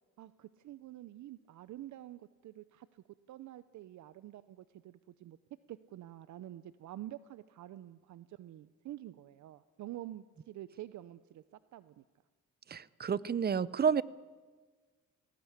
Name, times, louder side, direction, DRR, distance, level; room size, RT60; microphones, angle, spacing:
voice 1, 0.2-5.4 5.7-12.0, right 13 dB, 70° right, 15 dB, 0.7 m, -48 dB
voice 2, 12.7-14.0, right 7 dB, 30° right, 20 dB, 0.7 m, -30 dB
20.0 x 17.5 x 9.9 m, 1.4 s
cardioid pair, 90°, 30 cm